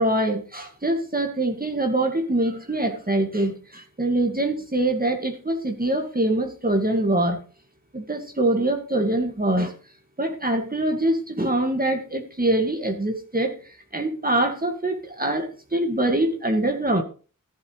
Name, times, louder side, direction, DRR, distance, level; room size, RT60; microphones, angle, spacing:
voice 1, 0.0-7.4 7.9-9.7 10.2-17.0, right 1 dB, 25° right, 4 dB, 2.1 m, -24 dB
15.0 x 10.5 x 3.3 m, 0.37 s
wide cardioid pair, 50°, 32 cm